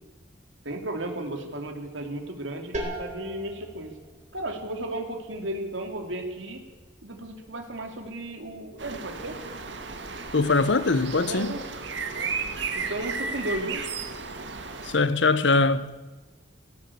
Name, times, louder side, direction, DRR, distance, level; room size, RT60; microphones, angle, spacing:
voice 1, 0.6-4.0 4.3-6.6 7.0-9.4 11.3-11.6 12.1-12.3 12.7-13.8, right 1 dB, 85° right, 2.9 m, -34 dB
sound 1, 2.7-8.3, right 1 dB, 40° right, 4.2 m, -41 dB
sound 2, 8.8-15.0, right 4 dB, 70° right, 2.1 m, -34 dB
voice 2, 10.3-11.5 14.8-15.9, left 3 dB, 70° left, 1.0 m, -22 dB
18.5 x 17.0 x 8.5 m
head